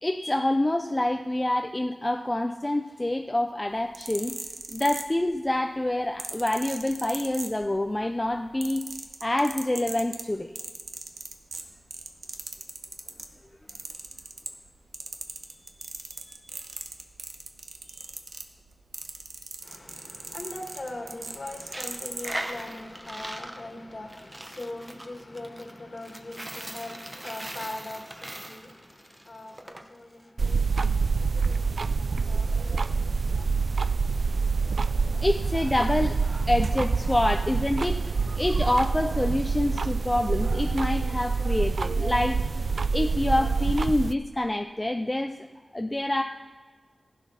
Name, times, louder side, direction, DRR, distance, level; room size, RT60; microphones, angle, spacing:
voice 1, 0.0-4.3 4.7-8.8 9.2-10.5 15.5-15.6 16.2-16.4 18.0-18.1 33.3-33.4 35.1-42.4 42.9-45.3 45.7-46.2, left 1 dB, 20° left, 5 dB, 0.5 m, -27 dB
sound 1, 3.8-5.5 6.2-7.9 8.3-13.3 13.7-14.7 14.9-22.4 23.1-23.3, right 4 dB, 90° right, 1.0 m, -38 dB
voice 2, 19.6-31.8 32.1-33.7, left 2 dB, 45° left, 3 dB, 1.8 m, -41 dB
Coin (dropping), 21.6-29.8, right 1 dB, 20° right, 0.9 m, -39 dB
sound 2, 30.4-44.1, right 4 dB, 65° right, 0.3 m, -26 dB
15.5 x 8.3 x 5.8 m, 1.5 s
wide cardioid pair, 95°, 0 cm